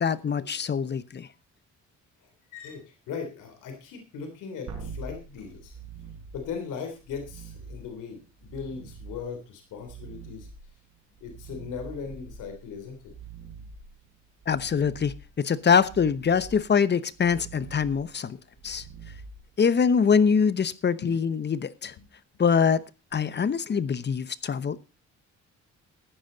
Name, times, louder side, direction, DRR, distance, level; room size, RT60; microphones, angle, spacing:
voice 1, 0.0-1.3 14.5-18.4 18.6-18.8 19.6-21.9 22.4-22.8 23.1-24.8, left 6 dB, 35° left, 0.9 m, -24 dB
voice 2, 2.5-5.8 6.3-10.5 11.2-13.1 21.0-21.2, left 6 dB, 90° left, 3.3 m, -38 dB
sound 1, 4.7-20.0 23.1-23.2, right 4 dB, 65° right, 4.7 m, -45 dB
15.0 x 10.0 x 4.0 m
cardioid pair, 90°, 30 cm